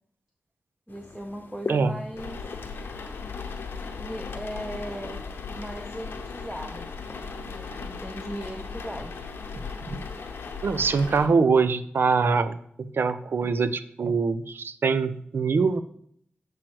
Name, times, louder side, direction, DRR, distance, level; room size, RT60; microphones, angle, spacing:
sound 1, 0.9-7.7, left 3 dB, 60° left, 0.8 m, -43 dB
voice 1, 0.9-2.4 3.9-5.2 5.5-6.9 7.5-9.1, equal, 5° right, 3 dB, 0.7 m, -38 dB
sound 2, 2.2-11.3, left 5 dB, 85° left, 0.9 m, -37 dB
voice 2, 10.6-15.8, right 4 dB, 70° right, 12 dB, 0.5 m, -24 dB
7.6 x 3.1 x 6.0 m, 0.66 s
cardioid pair, 55°, 4 cm